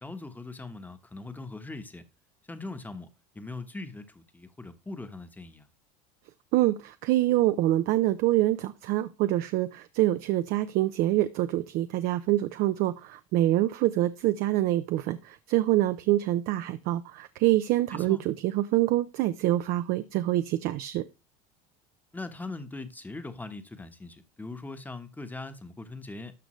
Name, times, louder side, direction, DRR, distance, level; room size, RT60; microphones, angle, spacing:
voice 1, 0.0-2.0 2.5-3.1 3.3-5.7 17.9-18.2 22.1-26.3, left 3 dB, 10° left, 1.1 m, -40 dB
voice 2, 6.5-21.0, right 15 dB, 60° right, 0.6 m, -26 dB
12.5 x 5.1 x 3.1 m
supercardioid pair, 95°, 17 cm